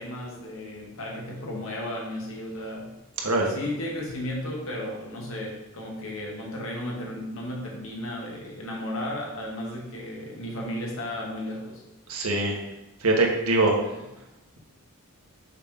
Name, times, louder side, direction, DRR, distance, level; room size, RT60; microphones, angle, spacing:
voice 1, 0.0-2.9 3.5-11.8, left 1 dB, 65° left, -2 dB, 1.7 m, -34 dB
voice 2, 12.1-12.6 13.0-13.8, right 2 dB, 85° right, 0 dB, 1.3 m, -22 dB
6.5 x 3.6 x 5.2 m, 0.96 s
head